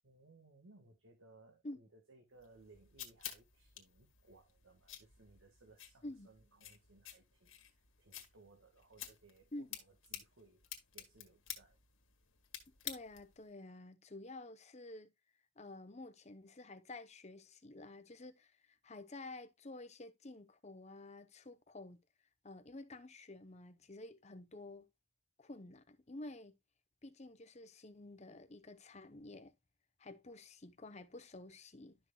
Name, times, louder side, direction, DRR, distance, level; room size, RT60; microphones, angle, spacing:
voice 1, 0.0-10.6 10.9-11.8, right 3 dB, 70° right, 1.6 m, -64 dB
sound 1, 2.4-13.4, left 11 dB, 70° left, 1.7 m, -51 dB
voice 2, 12.8-15.1 15.6-22.0 22.4-24.9 25.4-26.6 27.0-29.5 30.0-32.0, left 2 dB, 30° left, 0.8 m, -50 dB
11.5 x 6.1 x 2.3 m
head